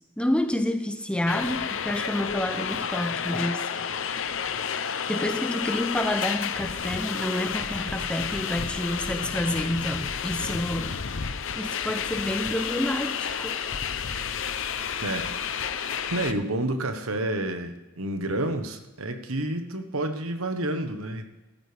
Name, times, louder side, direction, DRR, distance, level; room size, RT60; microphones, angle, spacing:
voice 1, 0.2-3.7 5.1-11.0 11.5-13.6, left 1 dB, 5° left, 8 dB, 0.6 m, -29 dB
sound 1, 1.3-16.3, left 7 dB, 60° left, 0.7 m, -31 dB
voice 2, 15.0-15.3 16.1-21.3, right 1 dB, 80° right, 7 dB, 1.3 m, -29 dB
14.0 x 13.0 x 3.5 m, 1.1 s
head